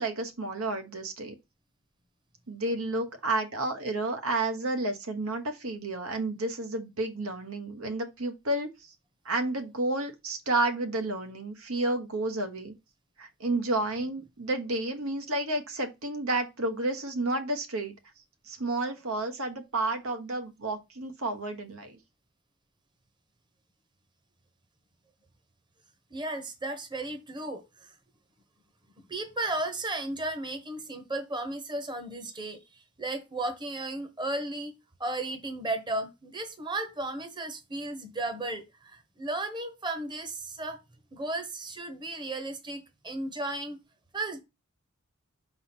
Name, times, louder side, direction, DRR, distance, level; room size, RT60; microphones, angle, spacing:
voice 1, 0.0-1.3 2.5-8.9 9.2-12.7 13.2-17.9 18.5-22.0, right 2 dB, 75° right, 1.2 m, -31 dB
voice 2, 26.1-27.9 29.1-34.7 35.0-40.8 41.1-43.8 44.1-44.4, right 2 dB, 20° right, 1.1 m, -34 dB
5.3 x 3.9 x 5.9 m
head